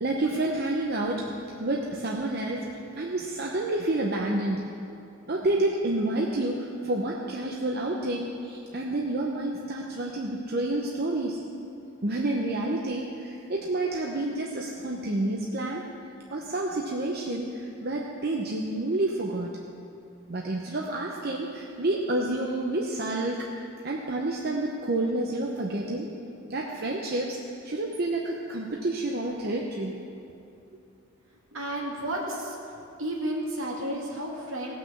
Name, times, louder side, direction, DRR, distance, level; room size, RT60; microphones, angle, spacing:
voice 1, 0.0-2.7 3.0-4.7 5.3-11.4 12.0-15.8 16.3-19.5 20.3-23.5 23.8-26.1 26.5-27.4 27.6-30.3, right 2 dB, 50° right, -1 dB, 0.8 m, -29 dB
voice 2, 31.5-32.6 33.0-34.7, right 1 dB, 75° right, -2 dB, 2.4 m, -32 dB
17.5 x 6.2 x 7.1 m, 2.6 s
head